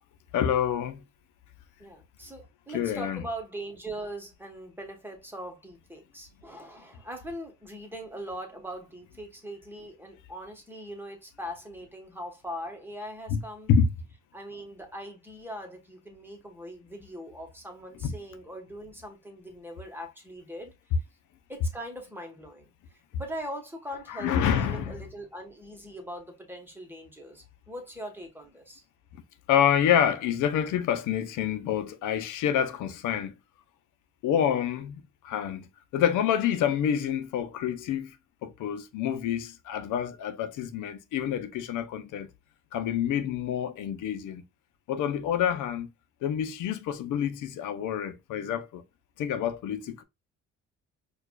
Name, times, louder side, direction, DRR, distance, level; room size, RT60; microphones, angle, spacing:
voice 1, 0.3-1.0 2.7-3.2 13.3-13.4 13.7-13.9 18.0-18.1 24.1-24.9 29.5-33.3 34.2-38.2 38.4-42.3 42.7-44.4 44.9-45.9 46.2-48.8 49.2-50.0, left 9 dB, 80° left, 0.6 m, -27 dB
voice 2, 1.8-13.7 14.3-20.7 21.5-28.8 45.5-45.7, equal, 5° right, 1.2 m, -41 dB
4.6 x 2.4 x 2.3 m
cardioid pair, 90°, 30 cm